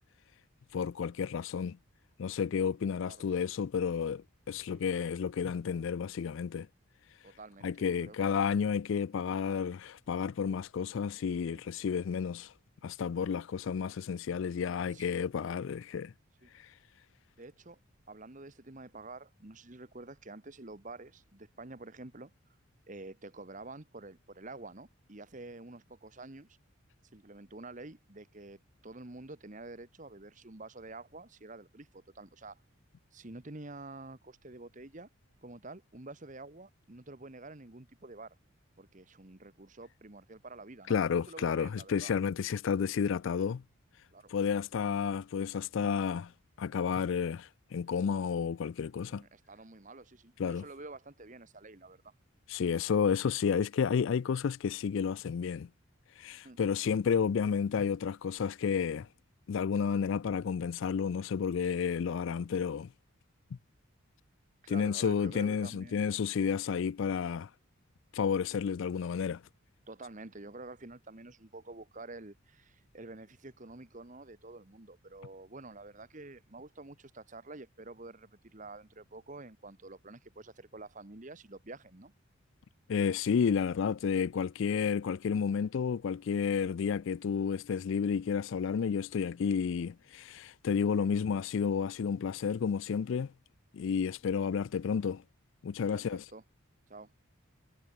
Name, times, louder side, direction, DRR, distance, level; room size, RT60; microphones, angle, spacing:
voice 1, 0.7-1.8 2.2-6.7 7.6-12.5 12.8-16.1 16.5-16.7 40.9-43.6 44.3-46.3 46.6-49.2 50.4-50.6 52.5-55.7 56.2-59.1 59.5-62.9 64.7-67.5 68.1-69.4 82.9-93.3 93.7-95.2 95.6-96.2, left 6 dB, 65° left, 0.3 m, -31 dB
voice 2, 7.2-8.2 11.5-11.6 14.9-15.2 16.4-16.5 17.4-17.8 18.1-22.3 22.9-26.6 27.1-32.6 33.1-35.1 35.4-38.4 38.8-41.0 41.3-42.1 44.1-44.3 49.1-52.1 56.4-56.6 64.6-66.1 69.9-82.1 91.0-91.1 95.9-96.4 96.9-97.1, right 2 dB, 35° right, 1.3 m, -48 dB
head